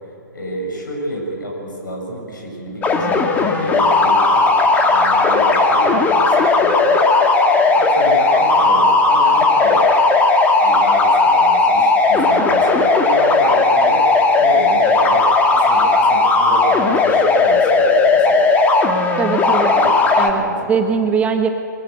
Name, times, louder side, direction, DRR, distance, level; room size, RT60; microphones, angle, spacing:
voice 1, 0.3-7.0 7.7-9.9 10.6-14.1 14.4-15.2 15.5-18.5 19.5-19.9 20.3-20.5, right 1 dB, 75° left, 0 dB, 7.2 m, -29 dB
sound 1, 2.8-20.3, left 3 dB, 15° left, 1.6 m, -15 dB
voice 2, 19.2-19.7 20.2-20.4 20.7-21.5, right 6 dB, 15° right, 5 dB, 1.3 m, -19 dB
23.5 x 15.5 x 8.1 m, 2.7 s
figure-of-eight pair, 125°, 11 cm